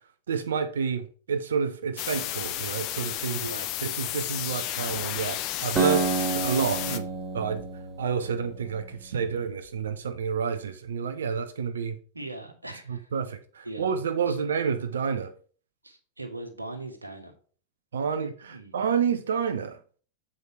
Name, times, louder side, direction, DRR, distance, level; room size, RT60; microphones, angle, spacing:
voice 1, 0.3-3.5 3.8-7.0 7.3-7.7 8.0-12.0 12.9-15.3 17.9-19.8, right 6 dB, 65° right, 0.6 m, -29 dB
sound 1, 2.0-7.0, left 14 dB, 40° left, 0.7 m, -32 dB
voice 2, 3.3-3.7 6.8-7.1 12.1-13.1 13.6-13.9 14.3-14.4 15.8-17.3 18.4-18.7, right 2 dB, 85° right, 1.5 m, -40 dB
Acoustic guitar, 5.8-9.3, right 4 dB, 15° right, 1.3 m, -30 dB
8.1 x 4.8 x 4.3 m
figure-of-eight pair, 90°, 0 cm